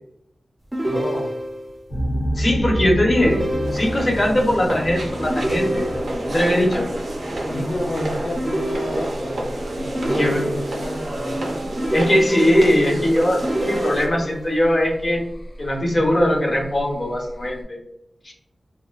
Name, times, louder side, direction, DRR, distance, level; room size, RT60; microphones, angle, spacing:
sound 1, 0.7-1.7 3.2-4.2 5.3-6.3 8.4-9.4 9.9-10.9 11.8-12.8 13.4-14.4, right 1 dB, 15° right, 0.4 m, -27 dB
voice 1, 0.9-1.3 7.4-9.4 9.8-11.6, left 1 dB, 65° left, -3 dB, 0.5 m, -31 dB
sound 2, 1.9-17.6, equal, 90° left, 0.9 m, -31 dB
voice 2, 2.3-3.4 3.7-5.9 6.2-6.9 10.1-10.6 11.9-15.2 15.6-17.8 18.2-18.3, left 1 dB, 40° left, -1 dB, 0.8 m, -20 dB
sound 3, 3.6-14.1, right 1 dB, 90° right, 0.5 m, -29 dB
2.9 x 2.2 x 2.4 m, 0.77 s
wide cardioid pair, 105°, 0 cm